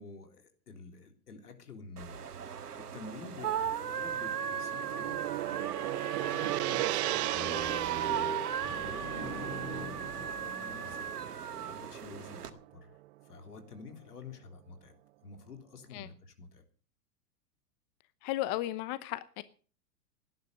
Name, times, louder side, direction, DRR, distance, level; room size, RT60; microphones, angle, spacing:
voice 1, 0.0-2.3 2.7-8.2 8.6-13.0 13.2-16.6, left 4 dB, 75° left, 3.6 m, -50 dB
sound 1, 2.0-12.5, right 8 dB, 80° right, 1.7 m, -37 dB
Gong, 4.2-12.6, right 17 dB, 45° right, 0.7 m, -37 dB
sound 2, 7.3-11.3, right 2 dB, 25° right, 7.2 m, -41 dB
voice 2, 18.2-19.4, left 15 dB, 35° left, 0.9 m, -34 dB
18.0 x 10.5 x 6.3 m
hypercardioid pair, 110°, 46 cm